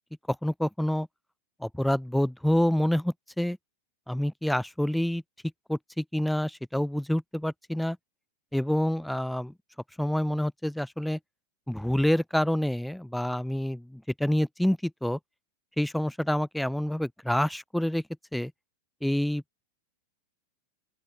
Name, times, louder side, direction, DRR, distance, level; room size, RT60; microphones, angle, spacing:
voice 1, 0.4-1.1 1.6-3.6 4.1-5.2 5.7-8.0 8.5-9.5 10.0-11.2 11.7-15.2 15.8-18.0 18.3-18.5 19.0-19.6, left 1 dB, ahead, 0.4 m, -27 dB
open air
figure-of-eight pair, 90°, 0 cm